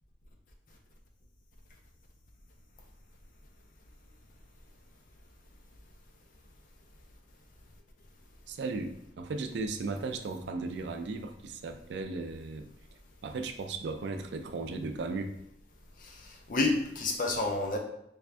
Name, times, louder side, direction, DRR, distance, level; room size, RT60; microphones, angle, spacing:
voice 1, 8.5-12.7 13.2-15.3, right 3 dB, 80° right, 7 dB, 0.4 m, -36 dB
voice 2, 16.0-17.8, left 2 dB, 50° left, 2 dB, 0.5 m, -30 dB
3.4 x 2.5 x 3.3 m, 0.76 s
head